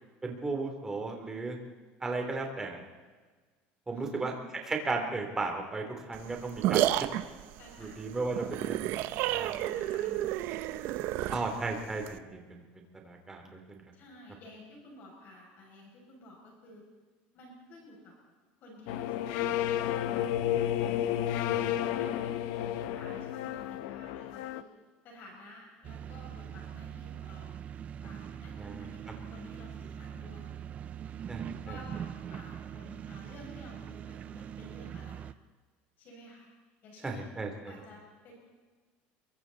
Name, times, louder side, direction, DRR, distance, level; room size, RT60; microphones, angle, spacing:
voice 1, 0.2-1.6 2.0-2.8 3.9-4.3 4.7-6.9 7.8-8.9 11.3-13.8 21.5-21.6 28.6-28.9 31.3-31.8 37.0-37.7, right 3 dB, 10° right, 2 dB, 3.5 m, -35 dB
voice 2, 3.9-4.6 7.5-8.0 9.3-10.5 11.2-11.5 13.9-16.8 17.3-18.1 18.6-20.4 21.5-22.6 22.9-24.6 25.0-27.5 28.0-30.5 31.6-35.2 36.0-36.5 36.8-37.3 37.7-38.3, left 2 dB, 45° left, -1 dB, 7.0 m, -52 dB
sound 1, 6.1-12.2, right 14 dB, 55° right, 1.0 m, -31 dB
sound 2, 18.9-24.6, left 11 dB, 80° left, 1.2 m, -31 dB
sound 3, 25.8-35.3, right 9 dB, 30° right, 0.7 m, -42 dB
27.5 x 23.5 x 4.2 m, 1.4 s
cardioid pair, 160°, 4 cm